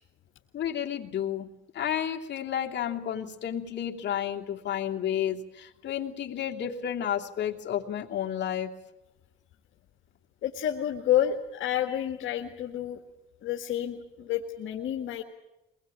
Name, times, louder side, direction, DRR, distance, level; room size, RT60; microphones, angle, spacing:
voice 1, 0.5-8.7, left 10 dB, 65° left, 1 dB, 2.8 m, -31 dB
voice 2, 10.4-13.0 13.4-15.2, left 11 dB, 80° left, 2 dB, 1.9 m, -29 dB
24.0 x 20.0 x 8.7 m, 0.96 s
cardioid pair, 90°, 20 cm